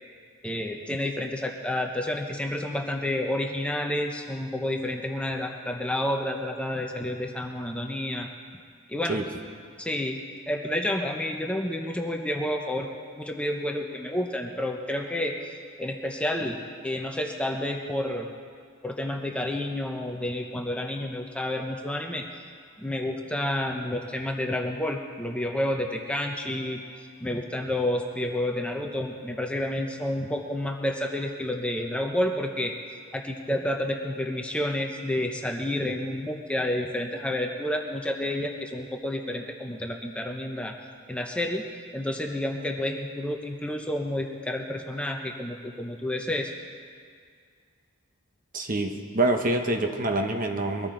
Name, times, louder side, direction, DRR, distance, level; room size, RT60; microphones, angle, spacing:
voice 1, 0.4-8.3 8.9-9.2 9.8-10.2 10.5-16.6 16.8-18.3 18.8-22.2 22.8-26.9 27.2-32.8 33.1-40.7 41.1-41.6 41.9-46.5, left 1 dB, 5° left, 2 dB, 0.7 m, -30 dB
voice 2, 48.5-50.9, right 2 dB, 40° right, 4 dB, 1.1 m, -26 dB
22.0 x 13.5 x 3.9 m, 2.1 s
head